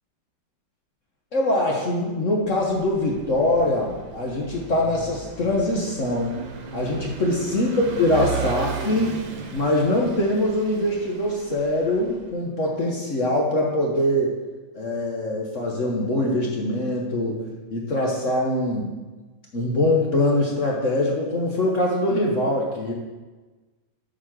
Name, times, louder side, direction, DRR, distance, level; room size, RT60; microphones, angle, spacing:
voice 1, 1.3-6.4 6.7-9.2 9.5-14.3 14.7-17.4 17.7-18.9 19.5-22.9, left 1 dB, 45° left, -2 dB, 1.2 m, -23 dB
Vehicle / Engine, 2.5-12.3, right 5 dB, 80° right, 1.7 m, -36 dB
8.3 x 5.1 x 6.1 m, 1.3 s
omnidirectional pair, 2.1 m